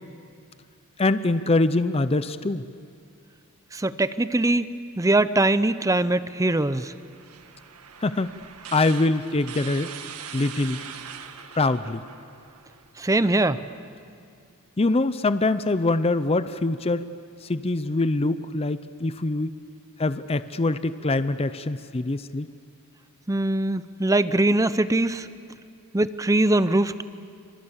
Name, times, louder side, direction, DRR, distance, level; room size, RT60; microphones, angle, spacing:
voice 1, 1.0-2.6 8.0-8.3 8.7-9.9 10.3-10.8 11.5-12.0 14.8-17.1 17.4-19.5 20.0-22.5, left 2 dB, 25° left, 13 dB, 0.6 m, -24 dB
voice 2, 3.7-6.9 13.0-13.6 23.3-25.3 25.9-27.0, right 2 dB, 15° right, 14 dB, 0.6 m, -22 dB
sound 1, 6.4-12.9, right 7 dB, 85° right, 1.7 m, -42 dB
27.5 x 26.5 x 7.3 m, 2.4 s
head